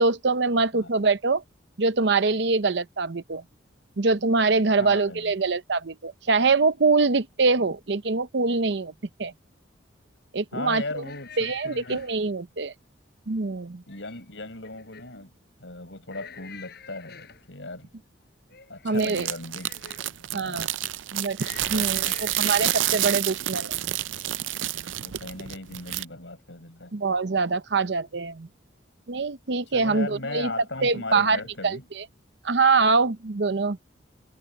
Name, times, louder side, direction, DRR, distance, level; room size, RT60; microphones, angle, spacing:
voice 1, 0.0-1.4 1.8-3.4 4.0-8.9 9.2-9.3 10.3-11.0 11.4-12.7 13.3-13.8 18.8-19.3 20.3-20.7 21.1-23.8 26.9-28.5 29.1-30.5 30.8-32.0 32.4-33.8, right 4 dB, 65° right, 0.8 m, -24 dB
voice 2, 4.8-5.3 10.5-12.1 13.9-15.3 15.6-17.9 18.7-20.7 21.6-22.5 25.0-26.9 29.7-31.9, left 2 dB, 75° left, 6.7 m, -38 dB
sound 1, 11.0-12.2 13.7-14.3 14.6-15.2 16.1-17.5 18.5-20.2 21.4-23.2 24.1-24.4 24.8-25.0, left 7 dB, 60° left, 5.3 m, -47 dB
sound 2, 19.0-26.0, right 14 dB, 90° right, 0.5 m, -29 dB
head